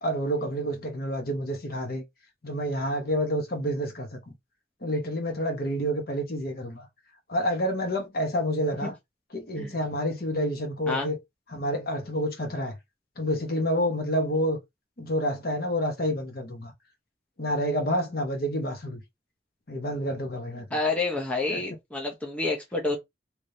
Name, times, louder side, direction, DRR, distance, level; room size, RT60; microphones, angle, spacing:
voice 1, 0.0-2.0 2.4-4.3 4.8-6.9 7.3-9.0 9.3-11.2 11.5-12.8 13.2-14.6 15.0-16.7 17.4-19.0 19.7-20.7 21.5-21.6, equal, 55° left, 1.1 m, -28 dB
voice 2, 20.7-23.0, left 3 dB, 5° left, 0.7 m, -28 dB
3.2 x 3.1 x 2.7 m
head